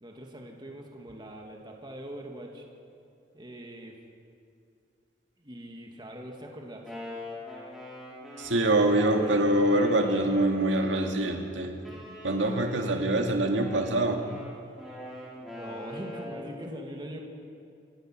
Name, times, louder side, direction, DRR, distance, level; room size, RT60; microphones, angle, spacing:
voice 1, 0.0-2.6 3.3-4.0 5.4-6.9 15.5-17.2, equal, 25° right, 1 dB, 2.1 m, -42 dB
Wind instrument woodwind instrument, 6.6-11.3 11.8-16.5, left 1 dB, ahead, 5.0 m, -43 dB
voice 2, 8.4-11.7 12.2-14.2, right 1 dB, 85° right, 3 dB, 2.2 m, -24 dB
26.5 x 16.5 x 6.1 m, 2.4 s
head